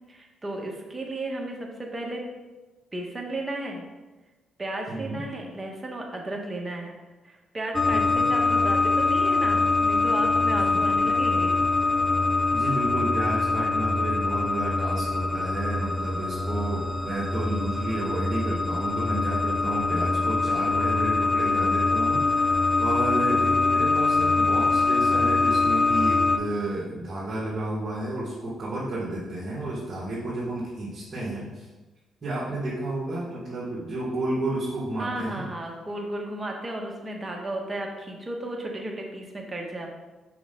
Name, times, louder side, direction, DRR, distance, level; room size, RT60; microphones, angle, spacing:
voice 1, 0.1-2.2 2.9-3.8 4.6-6.9 7.2-11.5 29.1-29.2 35.0-39.9, right 1 dB, 20° right, 0 dB, 1.4 m, -34 dB
voice 2, 4.9-5.2 7.9-8.2 10.6-11.1 11.8-11.9 12.5-31.7 32.2-35.4, right 1 dB, 40° right, -7 dB, 2.0 m, -31 dB
sound 1, 7.7-26.4, left 3 dB, 15° left, 0.8 m, -23 dB
5.9 x 5.5 x 3.9 m, 1.2 s
cardioid pair, 90°, 0 cm